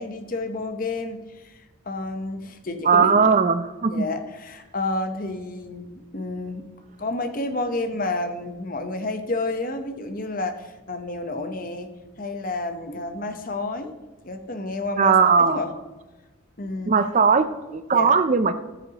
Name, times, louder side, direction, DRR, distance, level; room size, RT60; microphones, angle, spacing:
voice 1, 0.0-3.3 3.9-6.6 7.0-11.9 12.2-13.9 14.2-15.7 16.6-16.9 17.9-18.1, left 2 dB, 40° left, 7 dB, 0.8 m, -30 dB
voice 2, 2.8-4.0 15.0-15.6 16.9-18.5, right 5 dB, 35° right, 11 dB, 0.4 m, -19 dB
13.5 x 6.8 x 2.9 m, 1.1 s
head